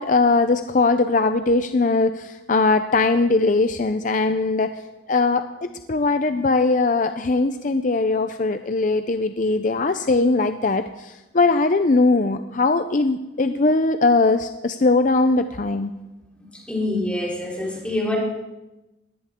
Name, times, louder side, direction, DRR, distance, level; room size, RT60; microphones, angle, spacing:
voice 1, 0.0-4.8 5.1-15.9, left 3 dB, 40° left, 9 dB, 0.5 m, -20 dB
voice 2, 16.5-18.2, left 2 dB, 5° left, -3 dB, 3.7 m, -26 dB
20.5 x 16.5 x 3.7 m, 1.0 s
head